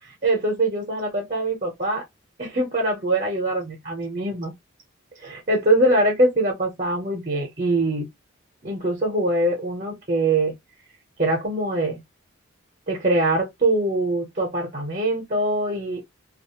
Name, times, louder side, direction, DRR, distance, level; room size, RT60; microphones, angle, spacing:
voice 1, 0.2-2.0 2.4-4.5 5.2-8.1 8.6-10.5 11.2-12.0 12.9-16.0, right 1 dB, 35° right, 0.7 m, -23 dB
2.3 x 2.0 x 2.8 m
head